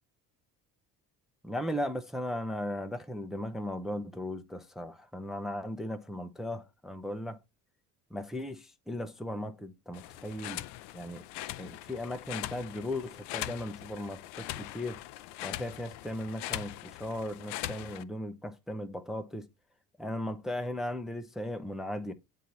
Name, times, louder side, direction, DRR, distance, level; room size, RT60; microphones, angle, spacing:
voice 1, 1.4-7.4 8.1-10.6 10.9-11.2 11.6-15.0 15.4-19.5 20.0-22.1, left 1 dB, ahead, 0.7 m, -37 dB
sound 1, 9.9-18.0, left 16 dB, 55° left, 0.6 m, -41 dB
8.3 x 4.0 x 4.1 m
hypercardioid pair, 55°, 48 cm